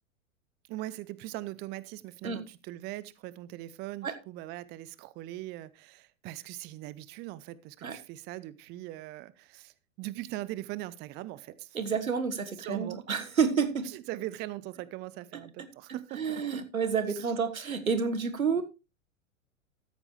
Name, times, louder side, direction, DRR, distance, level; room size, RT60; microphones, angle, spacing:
voice 1, 0.7-11.8 12.6-13.1 13.9-16.7 17.1-17.3, right 16 dB, 25° right, 0.5 m, -41 dB
voice 2, 11.7-13.8 16.1-18.6, right 6 dB, 90° right, 1.5 m, -29 dB
13.5 x 9.7 x 3.2 m
hypercardioid pair, 100°, 40 cm